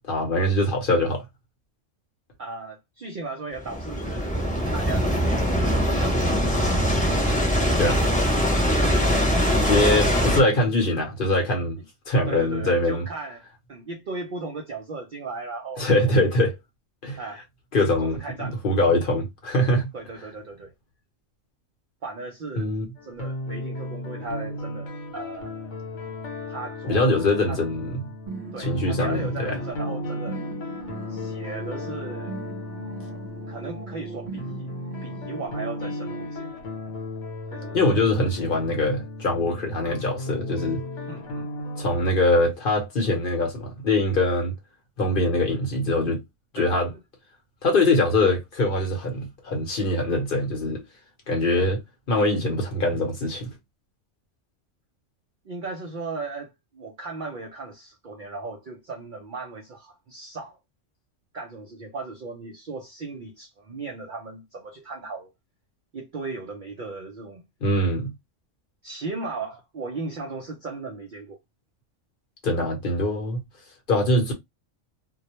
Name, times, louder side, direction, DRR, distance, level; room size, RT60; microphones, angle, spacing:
voice 1, 0.1-1.2 7.8-8.0 9.7-11.8 12.1-13.1 15.8-16.6 17.0-17.2 17.7-19.9 22.6-22.9 26.9-28.0 28.6-29.6 37.7-40.8 41.8-44.5 45.0-46.2 46.5-46.9 47.6-50.8 51.3-51.8 52.1-53.5 67.6-68.1 72.4-73.4 73.9-74.3, left 1 dB, 50° left, 0.8 m, -23 dB
voice 2, 2.4-7.8 8.3-10.0 10.5-10.7 11.8-11.9 12.3-16.2 17.2-17.4 18.0-18.9 19.9-20.7 22.0-22.7 23.0-25.6 26.5-27.7 28.5-30.4 31.1-32.4 33.5-34.7 35.0-36.6 37.5-37.8 41.1-41.5 46.6-47.0 55.5-60.6 61.3-65.3 65.9-67.5 68.8-71.4 72.5-72.7, right 3 dB, 65° right, 0.5 m, -37 dB
sound 1, 3.6-10.4, equal, 10° left, 0.4 m, -22 dB
sound 2, 23.0-41.9, left 1 dB, 70° left, 1.1 m, -35 dB
sound 3, 28.3-36.2, right 4 dB, 25° right, 1.0 m, -39 dB
2.2 x 2.1 x 2.9 m
omnidirectional pair, 1.3 m